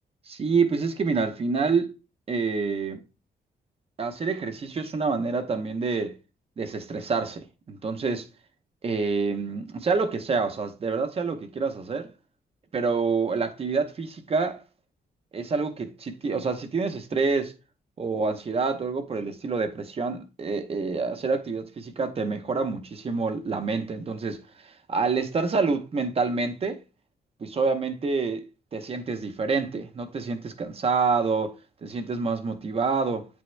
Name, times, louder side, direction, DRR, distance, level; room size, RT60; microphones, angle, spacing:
voice 1, 0.3-1.9 2.3-3.0 4.0-6.2 6.6-8.2 8.8-12.1 12.7-14.6 15.3-17.5 18.0-26.8 27.4-28.4 28.7-31.5 31.8-33.3, right 4 dB, 35° right, 0.7 m, -27 dB
8.7 x 3.5 x 3.2 m
wide cardioid pair, 180°, 18 cm